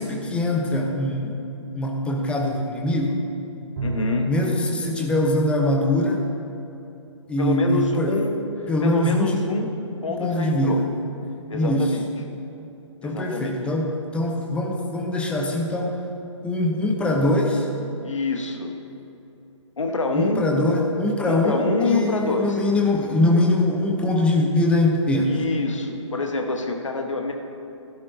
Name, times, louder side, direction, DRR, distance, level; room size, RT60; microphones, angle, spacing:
voice 1, 0.0-1.4 1.7-3.2 4.3-6.2 7.3-8.2 8.7-9.4 10.2-10.9 11.5-11.9 13.0-16.0 16.4-17.7 20.1-25.4, left 1 dB, 5° left, 1 dB, 0.9 m, -22 dB
voice 2, 3.8-4.3 7.4-9.7 10.0-10.8 11.5-12.1 13.0-13.6 18.0-18.7 19.8-20.5 21.3-22.6 25.2-27.3, left 3 dB, 70° left, 3 dB, 1.5 m, -26 dB
Bowed string instrument, 3.8-4.6, right 1 dB, 40° right, 2.0 m, -28 dB
15.5 x 12.0 x 2.9 m, 2.9 s
figure-of-eight pair, 130°, 16 cm